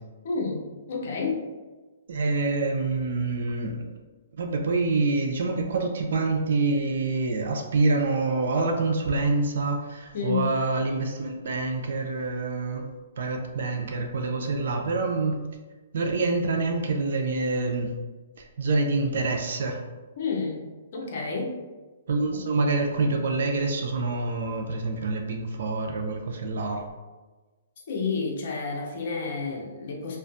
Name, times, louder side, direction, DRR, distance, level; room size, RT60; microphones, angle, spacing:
voice 1, 0.2-1.4 10.1-10.5 20.2-21.5 27.9-30.2, left 4 dB, 55° left, -1 dB, 0.6 m, -30 dB
voice 2, 2.1-3.8 4.4-12.9 13.2-15.3 15.9-17.9 18.4-19.8 22.1-26.8, right 3 dB, 70° right, 3 dB, 0.3 m, -26 dB
2.4 x 2.2 x 2.5 m, 1.3 s
hypercardioid pair, 155°, 0 cm